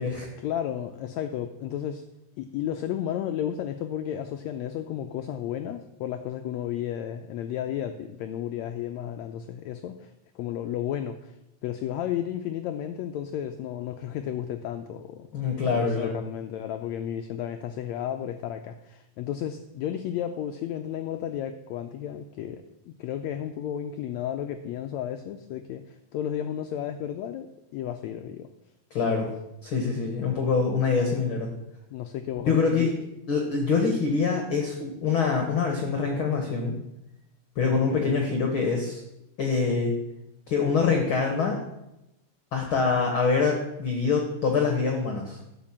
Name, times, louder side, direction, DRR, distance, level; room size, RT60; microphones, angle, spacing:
voice 1, 0.4-2.0 2.4-11.4 11.6-15.3 15.6-28.5 29.0-29.3 31.9-32.9 37.8-38.4, left 10 dB, 85° left, 7 dB, 1.5 m, -33 dB
voice 2, 15.3-16.2 28.9-29.3 29.6-31.5 32.5-32.9 33.3-36.8 37.5-39.0 39.4-39.9 40.5-41.6 42.5-45.4, left 5 dB, 55° left, 2 dB, 1.5 m, -25 dB
12.5 x 5.2 x 7.2 m, 0.89 s
omnidirectional pair, 3.8 m